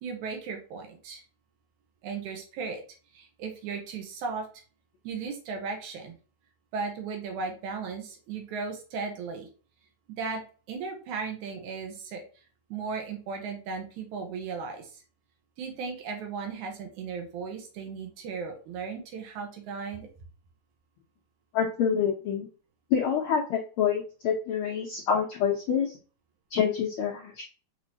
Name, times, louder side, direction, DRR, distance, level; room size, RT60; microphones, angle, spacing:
voice 1, 0.0-1.2 2.0-2.8 3.1-4.5 5.0-6.1 6.7-9.5 10.1-10.4 10.7-12.2 12.7-15.0 15.6-20.1, right 5 dB, 90° right, 2 dB, 2.5 m, -36 dB
voice 2, 21.5-22.5 22.9-26.0 26.5-27.4, left 7 dB, 80° left, 0 dB, 1.1 m, -27 dB
6.0 x 3.0 x 2.7 m, 0.37 s
omnidirectional pair, 3.3 m